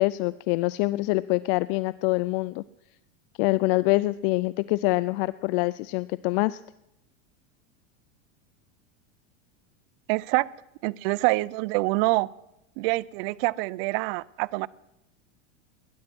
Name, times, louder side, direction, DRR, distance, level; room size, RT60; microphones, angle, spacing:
voice 1, 0.0-2.6 3.4-6.6, left 21 dB, 50° left, 18 dB, 0.4 m, -25 dB
voice 2, 10.1-10.5 10.8-12.3 12.8-14.7, right 23 dB, 50° right, 22 dB, 0.5 m, -26 dB
20.0 x 11.0 x 6.1 m, 0.88 s
supercardioid pair, 135°, 37 cm